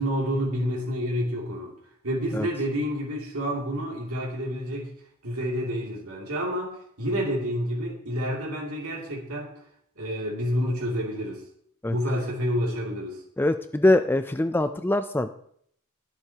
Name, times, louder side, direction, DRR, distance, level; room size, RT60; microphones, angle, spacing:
voice 1, 0.0-1.7 2.0-4.9 5.2-9.5 10.0-11.4 11.9-13.2, equal, 85° right, -2 dB, 2.7 m, -29 dB
voice 2, 13.4-15.3, left 1 dB, 10° left, 9 dB, 0.4 m, -23 dB
21.5 x 8.0 x 2.9 m, 0.65 s
head